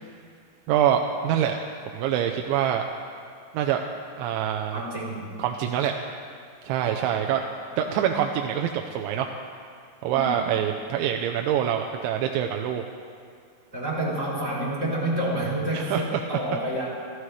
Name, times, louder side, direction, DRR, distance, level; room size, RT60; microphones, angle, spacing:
voice 1, 0.7-1.6 1.9-2.8 3.5-4.8 5.4-6.0 6.6-7.4 7.8-9.3 10.0-12.8 15.7-16.4, right 9 dB, 90° right, 3 dB, 3.1 m, -25 dB
voice 2, 4.7-5.3 7.1-7.3 7.7-7.8 10.1-10.5 13.7-16.9, right 1 dB, 15° right, -7 dB, 3.6 m, -29 dB
27.5 x 14.5 x 3.3 m, 2.2 s
omnidirectional pair, 5.2 m